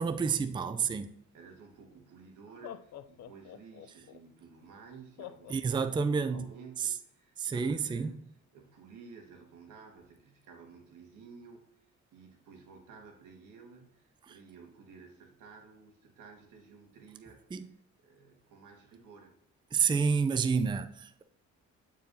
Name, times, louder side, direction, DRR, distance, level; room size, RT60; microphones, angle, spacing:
voice 1, 0.0-1.1 5.5-6.5 6.8-6.9 7.4-8.2 14.3-14.4 17.5-17.7 19.7-21.2, right 5 dB, 15° right, 0.4 m, -29 dB
voice 2, 0.6-8.2 8.5-17.7 18.0-19.3, right 5 dB, 85° right, 1.7 m, -54 dB
Laughter, 1.7-1.8 2.5-4.2 5.2-6.4, left 10 dB, 60° left, 0.5 m, -47 dB
9.0 x 4.6 x 2.7 m
cardioid pair, 90°, 30 cm